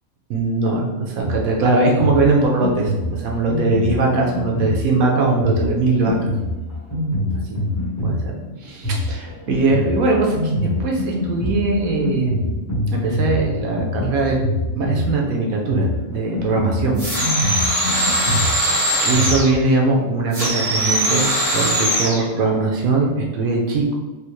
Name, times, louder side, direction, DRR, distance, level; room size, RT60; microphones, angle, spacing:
voice 1, 0.3-6.3 7.5-7.6 8.0-10.5 10.8-14.4 14.8-17.0 17.3-18.4 19.0-21.2 21.5-23.9, right 3 dB, 80° right, 0 dB, 1.1 m, -21 dB
Drum kit, 1.2-19.4, left 1 dB, 15° left, 1.0 m, -25 dB
sound 1, 17.0-19.6 20.3-22.2, right 1 dB, 25° right, 1.4 m, -20 dB
3.5 x 2.6 x 3.0 m, 1.2 s
omnidirectional pair, 1.5 m